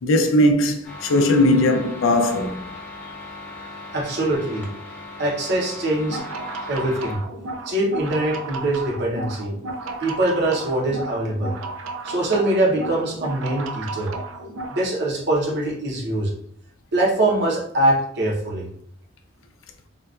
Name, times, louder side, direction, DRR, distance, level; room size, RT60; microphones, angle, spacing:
voice 1, 0.0-2.6, left 1 dB, 80° left, 0.4 m, -18 dB
sound 1, 0.8-7.1, left 2 dB, 10° left, 0.7 m, -38 dB
voice 2, 3.9-4.7 5.2-6.2 6.7-7.2 7.7-9.5 10.0-11.6 12.0-14.1 14.7-16.3 16.9-18.7, right 1 dB, 60° right, 0.7 m, -23 dB
sound 2, 6.0-14.9, right 2 dB, 90° right, 0.4 m, -33 dB
3.7 x 2.2 x 2.3 m
head